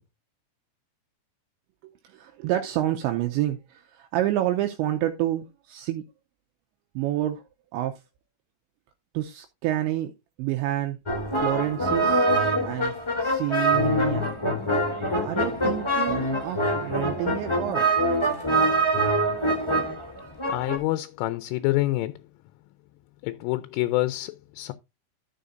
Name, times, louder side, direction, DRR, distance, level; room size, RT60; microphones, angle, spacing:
voice 1, 1.8-6.0 7.0-7.4 7.7-8.0 9.1-10.1 10.4-11.0 11.4-12.3 12.6-14.3 15.2-17.9, right 13 dB, 85° right, 2.7 m, -28 dB
sound 1, 11.1-20.8, right 1 dB, 20° left, 0.7 m, -24 dB
voice 2, 20.5-22.2 23.2-24.7, left 18 dB, 85° left, 3.1 m, -27 dB
13.0 x 7.0 x 2.5 m
omnidirectional pair, 5.8 m